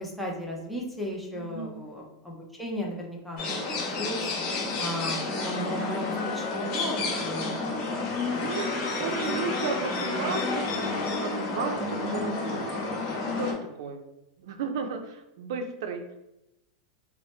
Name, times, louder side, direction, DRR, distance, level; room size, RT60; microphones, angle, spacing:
voice 1, 0.0-4.3 4.8-7.8 8.3-8.5 8.8-9.1, equal, ahead, -3 dB, 0.5 m, -36 dB
voice 2, 1.3-1.9 5.3-5.7 8.4-10.9 11.2-14.0 14.4-16.0, right 5 dB, 70° right, 5 dB, 0.5 m, -34 dB
sound 1, 3.4-13.5, left 3 dB, 40° left, 0.8 m, -30 dB
Piano, 6.2-8.3, left 9 dB, 75° left, 0.5 m, -45 dB
2.7 x 2.1 x 3.1 m, 0.90 s
supercardioid pair, 150°, 3 cm